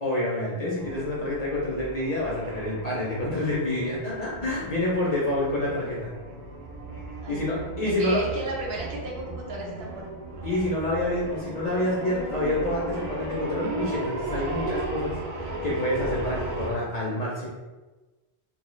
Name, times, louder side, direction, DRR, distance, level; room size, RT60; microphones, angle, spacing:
voice 1, 0.0-6.1 7.3-8.2 10.4-15.2 15.6-17.5, left 1 dB, 50° left, -6 dB, 0.5 m, -27 dB
sound 1, 0.8-16.8, right 2 dB, 55° right, 0.5 m, -36 dB
voice 2, 7.2-7.7 8.0-10.1, right 2 dB, 75° right, -2 dB, 0.9 m, -35 dB
2.3 x 2.2 x 3.0 m, 1.2 s
omnidirectional pair, 1.1 m